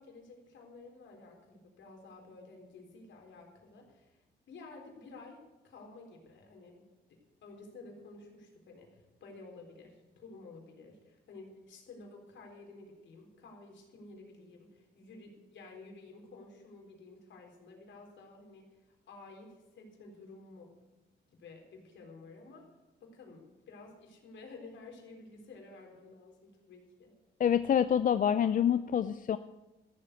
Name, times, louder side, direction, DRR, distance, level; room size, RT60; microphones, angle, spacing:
voice 1, 0.0-4.2 4.5-18.7 19.1-20.7 21.3-22.7 23.0-27.1, left 3 dB, 70° left, 1 dB, 3.9 m, -52 dB
voice 2, 27.4-29.4, left 9 dB, 45° left, 12 dB, 0.5 m, -26 dB
14.5 x 7.5 x 8.0 m, 1.1 s
cardioid pair, 90°, 20 cm